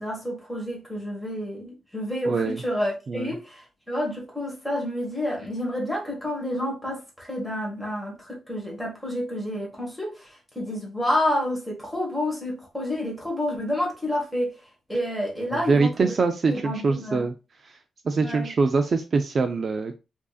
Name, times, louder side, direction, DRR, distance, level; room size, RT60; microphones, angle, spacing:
voice 1, 0.0-16.1 16.5-17.3 18.2-18.5, left 1 dB, 5° left, 1.4 m, -29 dB
voice 2, 2.3-2.6 3.1-3.3 15.5-17.3 17.6-17.8 18.0-20.0, right 4 dB, 35° right, 0.4 m, -24 dB
4.8 x 2.7 x 2.4 m
wide cardioid pair, 170°, 0 cm